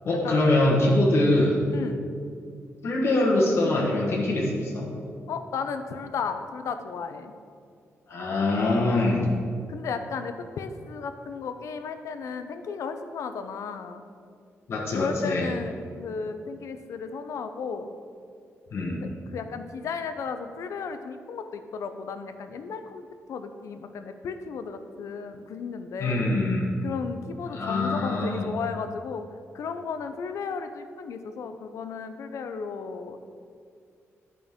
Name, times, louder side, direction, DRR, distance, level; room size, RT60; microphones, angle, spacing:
voice 1, 0.0-1.6 2.8-4.9 8.1-9.3 14.7-15.5 18.7-19.0 26.0-26.7 27.5-28.5, left 2 dB, 55° left, -3 dB, 1.2 m, -23 dB
voice 2, 1.7-2.1 5.3-7.3 8.6-9.1 9.7-14.0 14.9-17.9 19.0-26.4 26.8-29.3 29.5-33.2, left 5 dB, 80° left, 8 dB, 0.5 m, -34 dB
11.0 x 5.3 x 3.6 m, 2.3 s
wide cardioid pair, 155°, 5 cm